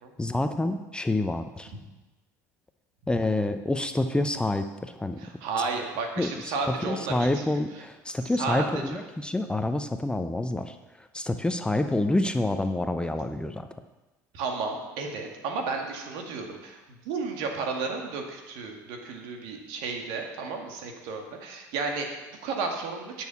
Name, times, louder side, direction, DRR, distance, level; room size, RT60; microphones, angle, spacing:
voice 1, 0.2-1.7 3.1-5.2 6.2-13.7, left 2 dB, 10° left, 8 dB, 0.7 m, -28 dB
voice 2, 5.2-7.6 8.4-9.0 14.3-16.8 17.0-23.3, right 4 dB, 65° right, 3 dB, 2.0 m, -33 dB
10.5 x 6.5 x 7.0 m, 1.1 s
hypercardioid pair, 65°, 9 cm